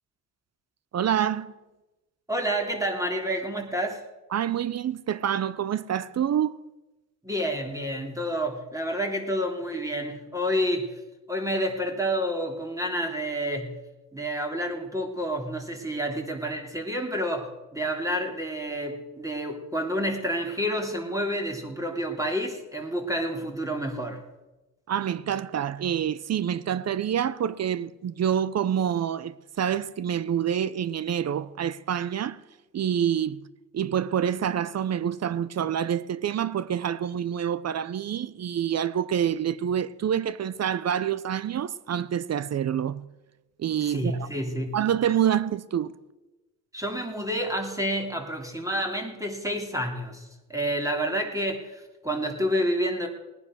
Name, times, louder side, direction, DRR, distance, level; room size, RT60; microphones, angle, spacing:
voice 1, 0.9-1.5 4.3-6.5 24.9-32.4 32.7-33.4 33.7-43.1 43.6-44.3 44.7-45.9, right 9 dB, 45° right, 0.7 m, -27 dB
voice 2, 2.3-4.1 7.2-11.0 11.3-13.8 14.1-24.2 43.8-44.8 46.7-53.1, equal, 10° right, 2.9 m, -29 dB
18.5 x 9.6 x 6.4 m
cardioid pair, 75°, 35 cm